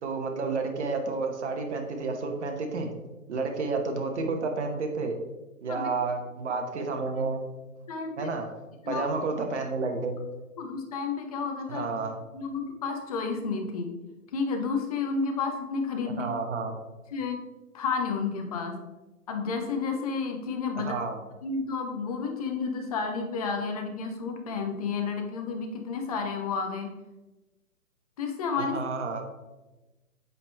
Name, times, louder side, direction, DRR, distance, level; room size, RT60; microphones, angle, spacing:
voice 1, 0.0-2.9 3.3-5.1 5.6-7.4 8.2-8.5 8.9-10.2 11.7-12.2 16.2-16.7 20.8-21.2 28.6-29.2, right 4 dB, 50° right, 4 dB, 1.2 m, -30 dB
voice 2, 7.9-8.3 8.8-9.0 10.6-11.8 12.3-13.9 14.3-16.3 17.1-17.4 17.7-18.8 19.3-20.9 21.4-26.9 28.2-28.8, left 5 dB, 25° left, 4 dB, 0.6 m, -31 dB
8.2 x 3.5 x 3.4 m, 1.1 s
hypercardioid pair, 145°, 43 cm